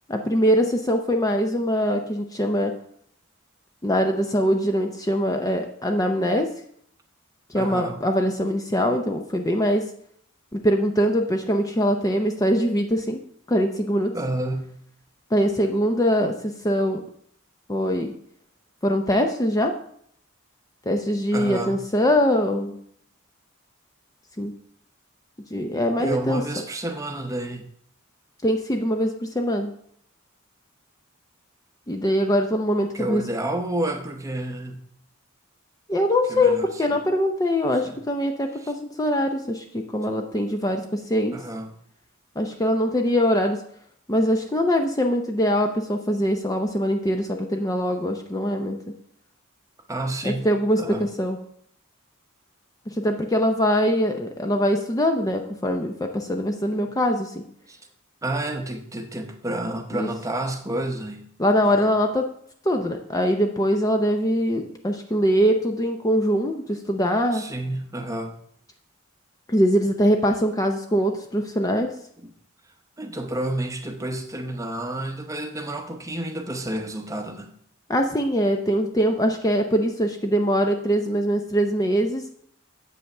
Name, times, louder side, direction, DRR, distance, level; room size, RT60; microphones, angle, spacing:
voice 1, 0.1-2.7 3.8-6.5 7.5-9.9 10.5-13.2 13.5-14.2 15.3-17.0 17.7-18.1 18.8-19.7 20.9-22.8 24.4-24.5 25.5-26.4 28.4-29.7 31.9-33.2 35.9-41.3 42.4-43.6 44.1-48.8 50.2-51.4 52.9-57.4 59.9-60.1 61.4-62.3 62.6-67.5 69.5-71.9 77.9-82.3, equal, 15° left, 4 dB, 0.5 m, -22 dB
voice 2, 7.5-8.0 14.1-14.8 21.3-21.9 26.0-27.7 32.9-34.9 36.3-36.7 37.8-38.0 38.6-38.7 41.3-41.7 49.9-50.5 50.8-51.0 57.7-57.8 58.2-61.3 61.6-61.9 67.3-68.3 72.2-72.3 73.0-77.5, right 1 dB, 15° right, 5 dB, 0.8 m, -30 dB
7.8 x 5.6 x 6.5 m, 0.67 s
head